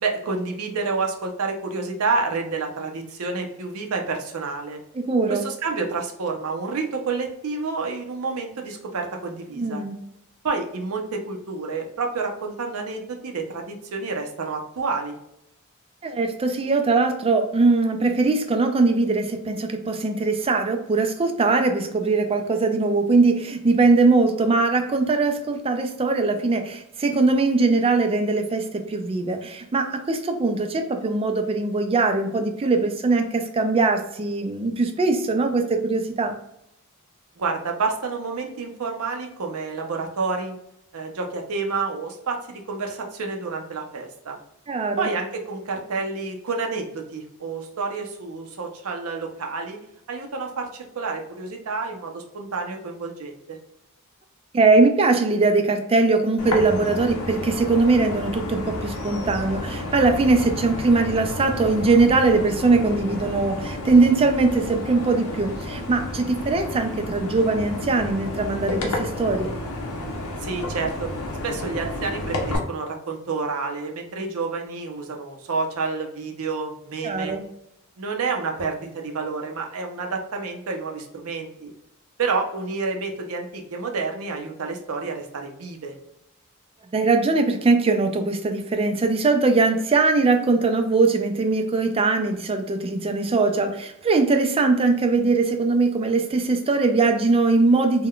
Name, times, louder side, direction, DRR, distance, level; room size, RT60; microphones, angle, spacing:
voice 1, 0.0-4.8 5.3-9.8 10.4-15.1 37.4-40.5 40.9-44.4 45.0-49.8 50.1-53.6 70.4-71.1 71.4-77.4 78.0-81.7 82.2-85.9, right 4 dB, 70° right, 2 dB, 0.5 m, -29 dB
voice 2, 5.0-5.4 9.6-9.9 16.0-36.3 44.7-45.1 54.5-69.5 77.0-77.4 86.9-98.1, right 3 dB, 25° right, 5 dB, 0.3 m, -21 dB
sound 1, 56.4-72.6, left 1 dB, 85° left, 0.7 m, -31 dB
3.6 x 2.2 x 2.2 m, 0.79 s
head